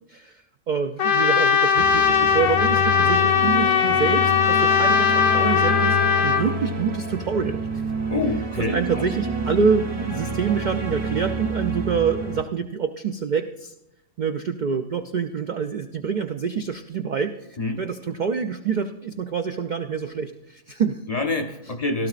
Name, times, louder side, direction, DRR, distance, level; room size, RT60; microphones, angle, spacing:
voice 1, 0.1-7.6 8.7-13.7 14.2-17.4 17.8-21.0, right 6 dB, 80° right, 7 dB, 0.4 m, -26 dB
Trumpet, 1.0-6.5, left 7 dB, 65° left, 1.0 m, -19 dB
sound 1, 1.8-12.4, right 1 dB, 25° right, 0.7 m, -28 dB
voice 2, 8.1-9.0 17.6-17.8 21.1-22.1, left 3 dB, 45° left, 5 dB, 0.5 m, -26 dB
16.5 x 12.5 x 2.4 m, 0.87 s
omnidirectional pair, 1.4 m